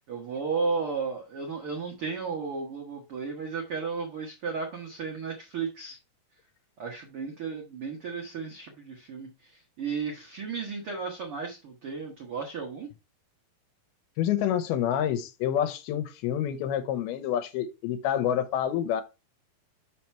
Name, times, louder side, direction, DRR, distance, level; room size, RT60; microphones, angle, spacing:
voice 1, 0.1-6.0 6.8-12.9, right 5 dB, 90° right, 1.2 m, -34 dB
voice 2, 14.2-19.0, left 10 dB, 80° left, 2.6 m, -28 dB
5.8 x 5.8 x 4.4 m
omnidirectional pair, 4.6 m